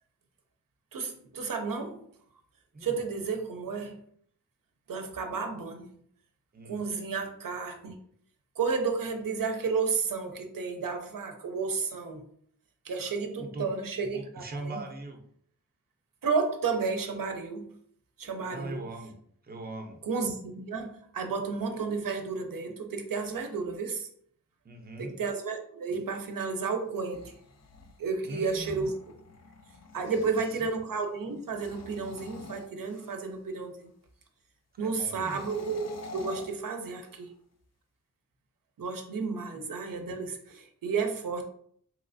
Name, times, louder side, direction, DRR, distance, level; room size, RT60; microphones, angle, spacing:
voice 1, 0.9-2.0 2.8-4.0 4.9-5.9 6.7-7.9 8.6-12.2 12.8-14.8 16.2-17.8 18.2-18.8 20.0-24.1 25.0-27.3 28.0-29.0 29.9-33.9 34.8-37.3 38.8-41.4, right 5 dB, 90° right, 4 dB, 0.5 m, -32 dB
voice 2, 6.5-6.8 13.4-13.7 14.1-15.2 18.4-19.2 19.4-20.0 24.6-25.2 28.2-28.8 29.9-30.7 34.8-35.4 39.5-39.6, right 2 dB, 30° right, 4 dB, 0.5 m, -41 dB
sound 1, 26.9-30.6 31.4-33.4 35.0-37.3, left 3 dB, 55° left, 0.4 m, -48 dB
3.2 x 3.0 x 2.5 m, 0.64 s
wide cardioid pair, 105°, 32 cm